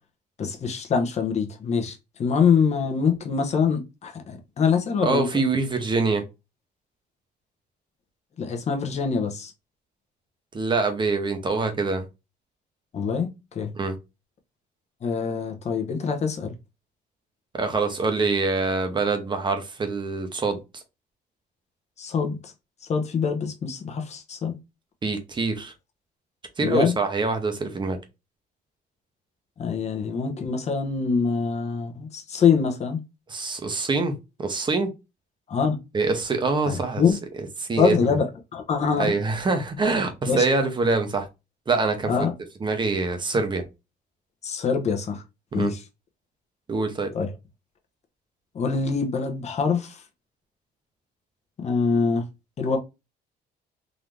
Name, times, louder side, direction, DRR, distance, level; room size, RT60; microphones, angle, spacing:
voice 1, 0.4-5.3 8.4-9.5 12.9-13.3 13.5-13.7 15.0-16.5 22.0-22.5 22.9-24.6 26.6-26.9 29.6-33.0 35.5-35.8 36.7-37.2 37.8-38.3 38.5-39.1 40.3-40.4 42.1-42.3 44.4-45.2 45.5-45.8 47.1-47.3 48.5-50.0 51.6-52.3 52.6-52.8, left 5 dB, 40° left, 1.0 m, -24 dB
voice 2, 5.0-6.2 10.5-12.0 13.7-13.9 17.5-20.8 25.0-25.7 26.6-28.0 33.3-34.1 34.4-34.9 35.9-37.0 37.6-38.1 39.0-41.3 41.7-42.3 42.6-43.6 45.5-45.7 46.7-47.1, right 3 dB, 30° right, 1.0 m, -25 dB
3.9 x 2.9 x 3.3 m
cardioid pair, 110°, 17 cm